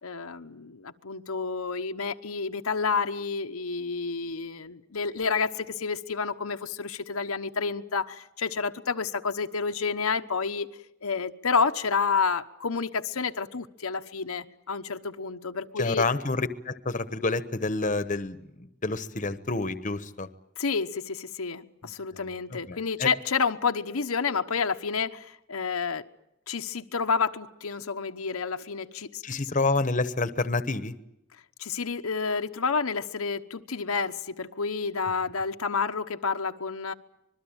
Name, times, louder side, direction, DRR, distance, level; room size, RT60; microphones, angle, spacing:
voice 1, 0.0-10.7 11.0-16.1 20.6-26.0 26.5-29.2 31.6-36.9, left 5 dB, 85° left, 6 dB, 1.1 m, -29 dB
voice 2, 15.8-20.3 21.8-23.1 29.2-30.9, left 3 dB, 35° left, 12 dB, 1.1 m, -29 dB
25.5 x 21.5 x 8.9 m, 0.85 s
head